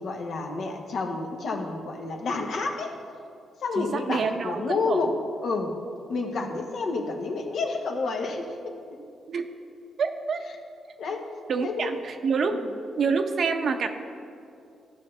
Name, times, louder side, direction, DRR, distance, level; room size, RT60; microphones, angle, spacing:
voice 1, 0.0-2.9 3.6-5.2 5.4-5.7 6.1-8.5 11.0-11.3 11.6-11.9 12.5-12.7, left 3 dB, 65° left, 2 dB, 1.2 m, -29 dB
voice 2, 3.8-5.1 6.4-6.5 9.3-9.4 10.0-10.4 11.5-12.6 13.0-13.9, right 5 dB, 60° right, 6 dB, 0.7 m, -27 dB
15.0 x 5.7 x 3.3 m, 2.5 s
cardioid pair, 85°, 0 cm